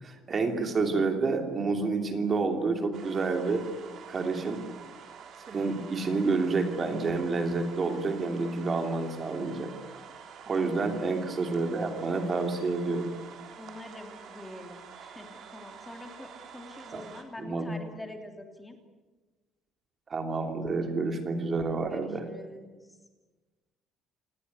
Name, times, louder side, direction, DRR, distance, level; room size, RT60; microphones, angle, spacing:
voice 1, 0.0-3.6 4.1-4.6 5.5-9.7 10.5-13.2 16.9-17.0 17.4-17.8 20.1-22.3, right 3 dB, 30° right, 5 dB, 2.8 m, -29 dB
sound 1, 2.9-17.2, right 7 dB, 50° right, 3.7 m, -48 dB
voice 2, 13.6-18.8 21.9-22.9, left 2 dB, 10° left, 4 dB, 2.9 m, -45 dB
28.5 x 19.0 x 9.6 m, 1.3 s
cardioid pair, 165°, 0 cm